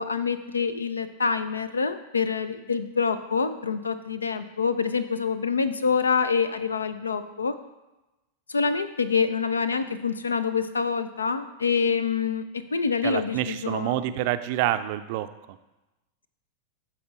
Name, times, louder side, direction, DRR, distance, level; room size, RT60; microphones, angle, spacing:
voice 1, 0.0-7.5 8.5-12.4 12.7-14.0, left 5 dB, 75° left, 13 dB, 0.5 m, -26 dB
voice 2, 13.0-15.3, right 13 dB, 45° right, 11 dB, 0.4 m, -27 dB
12.0 x 4.3 x 3.9 m, 1.0 s
figure-of-eight pair, 90°, 0 cm